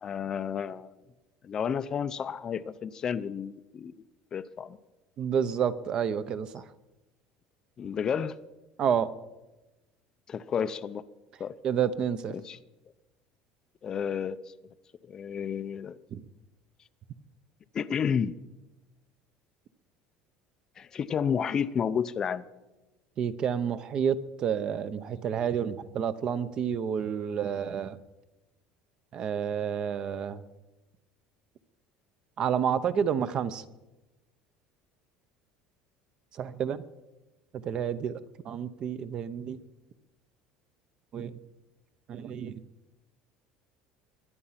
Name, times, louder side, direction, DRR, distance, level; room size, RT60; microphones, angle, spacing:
voice 1, 0.0-0.9 1.4-3.9 4.3-4.8 7.8-8.4 10.3-11.0 11.4-11.5 12.3-12.6 13.8-14.4 15.1-16.0 17.7-18.4 20.8-22.4, left 7 dB, 25° left, 14 dB, 0.5 m, -31 dB
voice 2, 5.2-6.6 8.8-9.1 11.6-12.3 16.1-16.2 23.2-28.0 29.1-30.4 32.4-33.6 36.4-36.8 37.6-38.1 38.5-39.6 41.1-41.3 42.1-42.6, right 8 dB, 35° right, 14 dB, 0.7 m, -29 dB
22.0 x 9.9 x 5.8 m, 1.1 s
cardioid pair, 160°, 2 cm